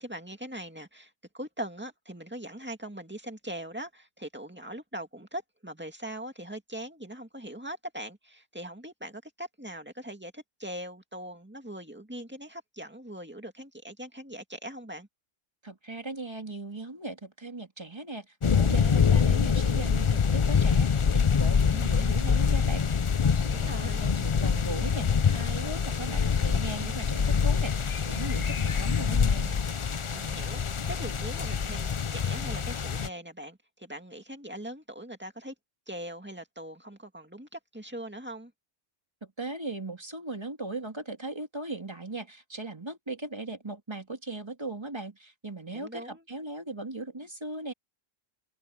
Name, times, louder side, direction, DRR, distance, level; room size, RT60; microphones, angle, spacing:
voice 1, 0.0-15.1 23.5-24.0 30.1-35.5 35.9-38.5 45.7-46.3, right 1 dB, 10° right, 2.1 m, -41 dB
voice 2, 15.6-18.3 18.6-27.7 28.0-29.6 39.4-47.7, right 2 dB, 25° right, 2.4 m, -38 dB
sound 1, 18.4-33.1, left 6 dB, 35° left, 0.6 m, -25 dB
open air
omnidirectional pair, 1.0 m